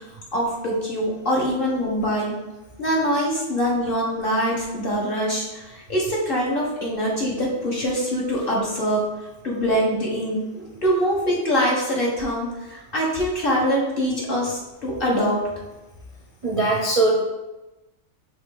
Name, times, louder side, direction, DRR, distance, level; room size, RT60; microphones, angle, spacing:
voice 1, 0.3-2.3 2.8-9.0 9.4-15.4, equal, 45° left, -3 dB, 1.7 m, -24 dB
voice 2, 16.4-17.1, right 2 dB, 35° right, -2 dB, 0.5 m, -20 dB
5.4 x 3.7 x 4.8 m, 1.0 s
omnidirectional pair, 1.4 m